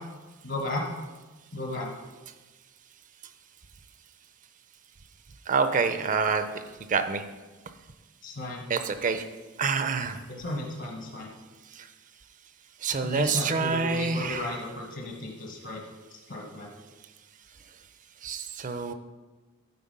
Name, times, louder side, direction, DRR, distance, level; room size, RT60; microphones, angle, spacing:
voice 1, 0.4-0.9 1.5-1.9 8.2-8.6 10.3-11.3 13.0-15.8 16.3-16.7, left 2 dB, 65° left, 0 dB, 1.2 m, -34 dB
voice 2, 5.5-6.4 6.9-7.2 8.7-9.2 9.6-10.2 12.8-14.5 18.2-18.9, right 5 dB, 40° right, 9 dB, 0.5 m, -27 dB
9.6 x 4.0 x 5.4 m, 1.2 s
head